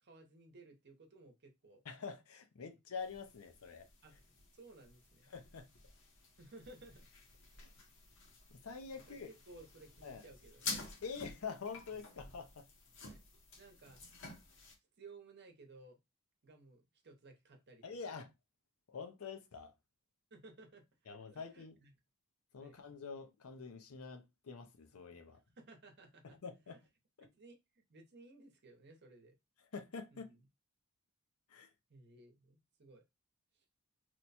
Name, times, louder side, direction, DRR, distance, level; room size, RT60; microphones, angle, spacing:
voice 1, 0.0-1.8 4.0-5.3 6.4-7.1 9.1-10.7 13.1-13.2 13.6-14.0 15.0-16.0 16.4-17.8 20.3-21.9 22.6-22.8 25.6-26.4 26.7-26.8 27.2-29.3 30.1-30.4 31.9-33.0 33.6-33.7, right 2 dB, 55° right, 0.9 m, -58 dB
voice 2, 1.8-3.9 5.3-5.7 7.6-7.7 8.5-9.3 10.0-10.2 11.0-12.6 17.8-18.3 18.9-19.7 21.1-21.7 22.5-25.4 26.2-26.8 29.7-30.3 31.5-31.7, left 5 dB, 80° left, 0.6 m, -46 dB
sound 1, 3.0-14.7, left 3 dB, 60° left, 1.0 m, -50 dB
3.0 x 2.2 x 4.1 m
head